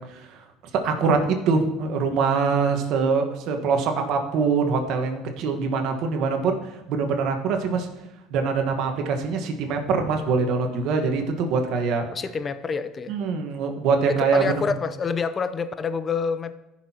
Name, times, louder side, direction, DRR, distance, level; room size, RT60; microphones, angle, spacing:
voice 1, 0.7-7.9 8.3-12.1 13.1-14.6, right 5 dB, 65° right, 4 dB, 1.3 m, -24 dB
voice 2, 12.1-13.2 14.1-16.5, left 5 dB, 35° left, 12 dB, 0.6 m, -27 dB
15.0 x 6.0 x 2.9 m, 0.96 s
supercardioid pair, 90°, 0 cm